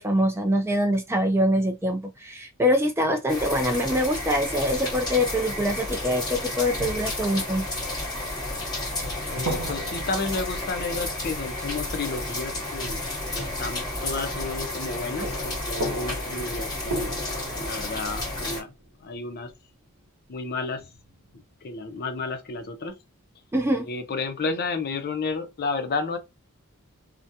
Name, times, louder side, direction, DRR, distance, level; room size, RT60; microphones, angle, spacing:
voice 1, 0.0-7.7 23.5-23.9, equal, 10° right, 0.3 m, -24 dB
sound 1, 3.3-18.6, left 2 dB, 20° left, 1.1 m, -31 dB
sound 2, 6.8-8.6 9.0-12.0 12.8-15.0 15.2-19.5 20.8-21.4, right 1 dB, 80° right, 0.7 m, -37 dB
voice 2, 9.3-13.0 13.3-17.1 17.5-18.7 19.0-19.5 20.3-20.9 21.6-23.0 23.9-26.2, left 3 dB, 45° left, 0.5 m, -31 dB
2.3 x 2.1 x 2.7 m
head